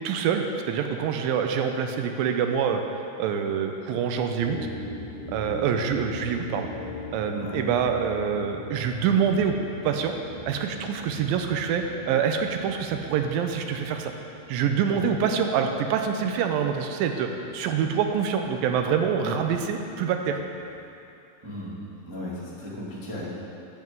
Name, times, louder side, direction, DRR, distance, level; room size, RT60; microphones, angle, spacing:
voice 1, 0.0-2.8 3.2-4.6 5.3-6.7 7.1-9.6 9.8-10.1 10.5-14.1 14.5-17.3 17.5-20.4, right 7 dB, 90° right, 5 dB, 2.4 m, -25 dB
sound 1, 4.4-20.8, left 1 dB, 55° right, 4.2 m, -42 dB
voice 2, 21.4-21.7 22.0-23.2, left 1 dB, 15° right, -8 dB, 0.8 m, -35 dB
10.5 x 5.5 x 7.6 m, 2.7 s
omnidirectional pair, 4.1 m